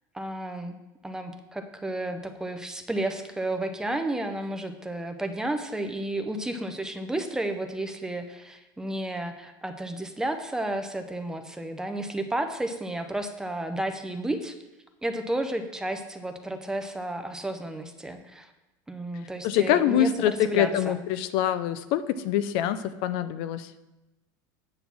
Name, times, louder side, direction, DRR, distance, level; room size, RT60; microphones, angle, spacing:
voice 1, 0.1-0.8 1.0-14.6 15.0-18.5 18.9-21.0, right 1 dB, 5° right, 6 dB, 0.5 m, -32 dB
voice 2, 19.4-23.7, left 10 dB, 55° left, 13 dB, 0.5 m, -25 dB
8.7 x 4.1 x 6.9 m, 1.0 s
supercardioid pair, 150°, 10 cm